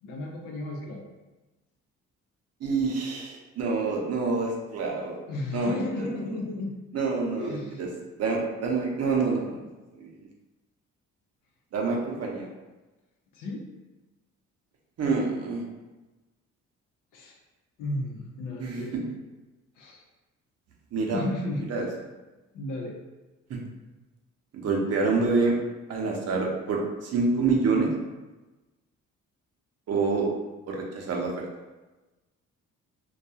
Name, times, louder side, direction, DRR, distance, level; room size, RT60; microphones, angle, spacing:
voice 1, 0.0-1.0 5.3-6.7 7.4-7.8 13.3-13.6 17.1-17.4 17.8-19.1 19.8-20.0 21.1-21.6 22.5-22.9, left 2 dB, 85° left, 0 dB, 0.6 m, -33 dB
voice 2, 2.6-5.2 5.5-6.1 6.9-7.9 8.2-9.6 9.9-10.1 11.7-12.5 15.0-15.6 18.6-19.0 20.9-21.2 21.7-21.9 23.5-23.6 24.5-25.6 25.9-27.9 29.9-30.3 30.7-31.5, right 4 dB, 55° right, -1 dB, 0.7 m, -27 dB
2.3 x 2.2 x 2.8 m, 1.1 s
cardioid pair, 90°, 30 cm